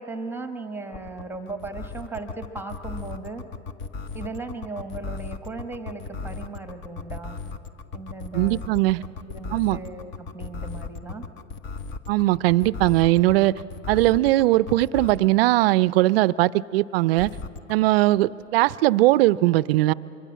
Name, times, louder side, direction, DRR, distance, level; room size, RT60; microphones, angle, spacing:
voice 1, 0.0-3.4 4.1-7.4 7.9-8.6 9.0-11.3, right 3 dB, 5° right, 7 dB, 1.3 m, -37 dB
sound 1, 0.9-15.3 17.1-17.7, left 4 dB, 30° left, 1.0 m, -35 dB
voice 2, 8.3-9.0 9.5-9.8 12.1-13.5 13.9-17.3 17.7-19.9, right 17 dB, 50° right, 19 dB, 0.5 m, -20 dB
25.5 x 23.5 x 7.4 m, 2.9 s
hypercardioid pair, 105°, 39 cm